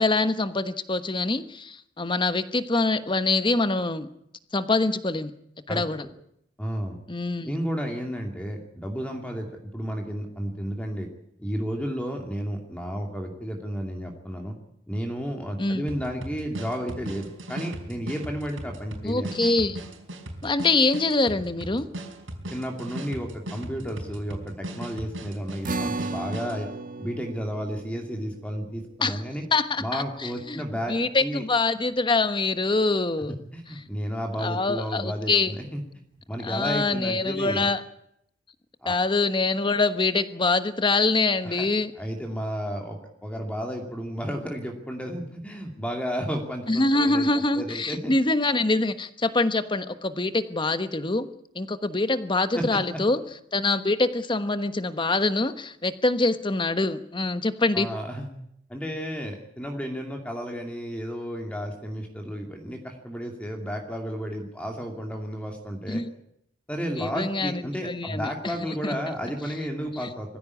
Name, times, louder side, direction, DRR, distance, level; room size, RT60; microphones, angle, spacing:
voice 1, 0.0-4.1 4.5-5.3 5.7-6.0 7.1-7.5 15.6-15.8 19.0-19.8 20.4-21.9 29.0-29.2 29.5-30.6 30.9-33.3 34.4-35.5 36.4-37.8 38.9-41.9 46.7-51.3 51.5-53.2 53.5-57.9 65.9-66.1 66.9-68.5 68.8-68.9, left 3 dB, 25° left, 11 dB, 1.3 m, -24 dB
voice 2, 6.6-7.0 7.4-11.1 11.4-14.5 14.9-19.3 22.5-26.7 27.0-29.4 29.8-30.9 31.2-31.4 33.5-35.8 36.3-37.7 38.8-38.9 41.4-41.7 42.0-48.1 52.5-52.8 57.7-58.3 58.7-66.0 66.7-70.4, equal, 5° left, 2 dB, 2.5 m, -32 dB
sound 1, 15.9-26.6, right 1 dB, 85° right, 4.5 m, -38 dB
sound 2, 25.6-32.3, right 2 dB, 45° right, 1.3 m, -37 dB
22.5 x 15.5 x 9.7 m, 0.75 s
head